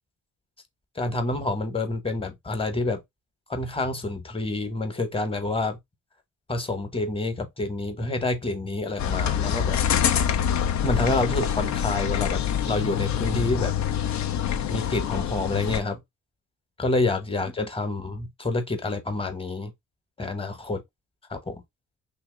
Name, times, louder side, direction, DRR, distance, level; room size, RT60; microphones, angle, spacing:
voice 1, 0.9-3.0 3.5-5.8 6.5-9.8 10.8-13.7 14.7-16.0 16.8-19.7 20.2-20.8 21.3-21.6, left 2 dB, 20° left, 1.0 m, -28 dB
sound 1, 9.0-15.8, left 8 dB, 65° left, 0.7 m, -25 dB
2.9 x 2.8 x 3.7 m
cardioid pair, 90°, 30 cm